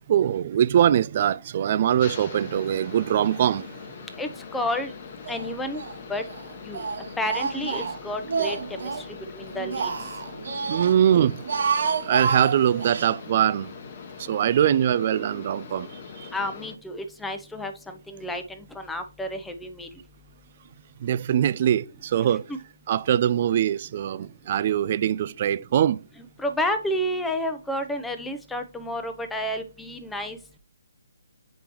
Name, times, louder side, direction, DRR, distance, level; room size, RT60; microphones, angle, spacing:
voice 1, 0.1-3.7 10.7-11.4 12.1-13.7 14.2-15.9 16.2-16.3 21.0-22.4 22.9-26.0, right 10 dB, 40° right, 0.3 m, -22 dB
sound 1, 2.0-16.8, left 5 dB, 40° left, 1.0 m, -42 dB
voice 2, 4.2-4.9 5.3-5.8 6.1-6.2 6.7-6.8 7.2-9.1 9.3-9.9 16.3-19.9 22.5-22.6 26.4-30.4, left 1 dB, 5° left, 0.7 m, -30 dB
Speech, 5.3-6.0 6.3-9.1 9.5-11.0 11.3-13.1, right 5 dB, 60° right, 1.0 m, -29 dB
8.2 x 5.1 x 3.0 m
figure-of-eight pair, 145°, 0 cm